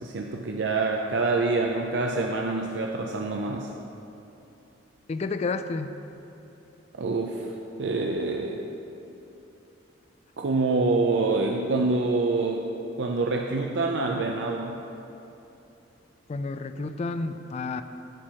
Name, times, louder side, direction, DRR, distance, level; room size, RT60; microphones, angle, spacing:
voice 1, 0.0-3.7 7.0-7.5 7.8-8.7 10.4-12.7 13.0-14.8, right 3 dB, 65° right, 1 dB, 0.5 m, -26 dB
voice 2, 5.1-5.9 16.3-17.8, left 3 dB, 35° left, 10 dB, 0.3 m, -30 dB
11.5 x 4.5 x 6.2 m, 3.0 s
head